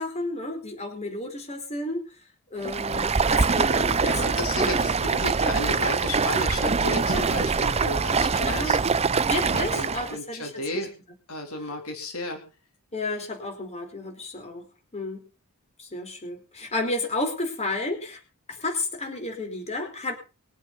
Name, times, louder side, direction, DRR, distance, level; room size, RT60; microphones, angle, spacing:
voice 1, 0.0-2.0 2.5-4.4 4.6-5.4 5.8-6.0 7.1-7.3 8.5-8.9 9.2-10.9 12.9-14.7 14.9-15.3 15.8-18.2 18.5-20.1, left 2 dB, 30° left, 3 dB, 4.8 m, -32 dB
Stream, 2.6-10.2, right 5 dB, 30° right, 0.7 m, -24 dB
voice 2, 4.0-8.8 9.5-10.9 11.3-12.4, left 1 dB, 75° left, 4 dB, 3.6 m, -33 dB
23.0 x 8.5 x 5.5 m, 0.34 s
head